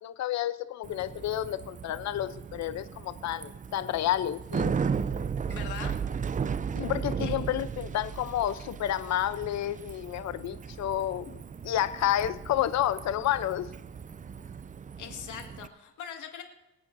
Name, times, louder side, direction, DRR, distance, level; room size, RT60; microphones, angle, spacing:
voice 1, 0.0-4.7 6.7-11.4 11.6-13.7, left 12 dB, 65° left, 13 dB, 0.7 m, -30 dB
Bicycle, 0.8-15.7, right 6 dB, 25° right, 0.4 m, -36 dB
voice 2, 5.5-5.9 7.2-7.4 15.0-16.4, left 8 dB, 80° left, 3 dB, 2.1 m, -41 dB
24.0 x 8.8 x 2.7 m, 0.96 s
cardioid pair, 90°, 30 cm